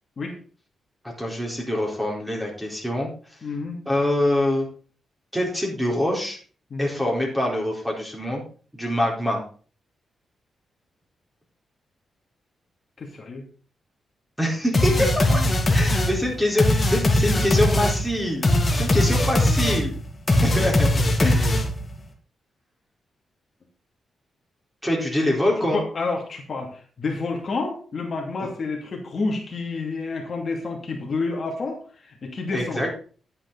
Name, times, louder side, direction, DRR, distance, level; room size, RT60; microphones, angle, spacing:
voice 1, 1.2-3.1 3.9-4.7 5.3-6.4 6.8-8.4 8.7-9.4 14.4-15.4 15.7-18.4 18.7-19.9 20.4-20.9 21.2-21.5 24.8-25.8 32.5-32.9, left 1 dB, 5° right, -1 dB, 4.1 m, -24 dB
voice 2, 3.4-3.8 6.7-6.9 13.0-13.4 25.7-32.8, left 3 dB, 45° left, 1 dB, 2.6 m, -29 dB
sound 1, 14.7-21.9, left 1 dB, 25° left, 2.2 m, -21 dB
11.0 x 8.8 x 4.1 m, 0.40 s
cardioid pair, 115°, 0 cm